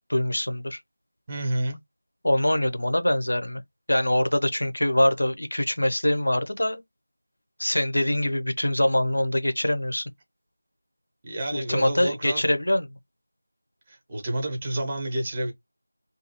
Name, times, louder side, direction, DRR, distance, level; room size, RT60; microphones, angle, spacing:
voice 1, 0.1-0.8 2.2-3.6 3.9-6.8 7.6-10.1 11.5-12.9, left 1 dB, 90° left, 0.7 m, -24 dB
voice 2, 1.3-1.8 11.2-12.4 13.9-15.5, right 1 dB, 10° right, 0.6 m, -29 dB
2.7 x 2.3 x 2.8 m
figure-of-eight pair, 180°, 0 cm